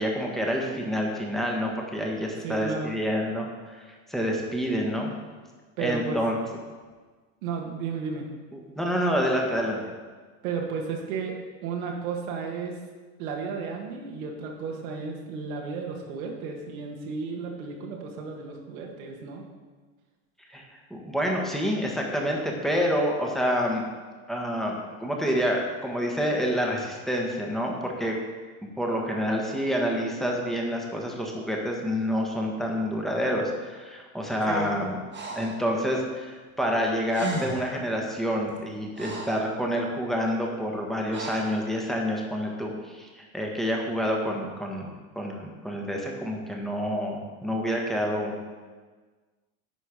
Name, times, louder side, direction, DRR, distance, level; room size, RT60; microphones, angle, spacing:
voice 1, 0.0-5.1 5.8-6.4 8.5-9.8 20.5-23.9 24.3-28.2 28.6-35.0 35.3-44.9 45.1-48.4, equal, ahead, -1 dB, 1.4 m, -28 dB
voice 2, 2.4-2.9 5.8-6.2 7.4-8.3 10.4-12.8 13.2-19.4 34.4-34.7, right 5 dB, 75° right, 1 dB, 1.8 m, -33 dB
Breathing, 35.1-35.6 36.8-36.9 37.1-37.8 38.5-39.5 41.1-41.6, right 2 dB, 25° right, 1.5 m, -35 dB
10.0 x 4.5 x 5.0 m, 1.4 s
supercardioid pair, 120°, 42 cm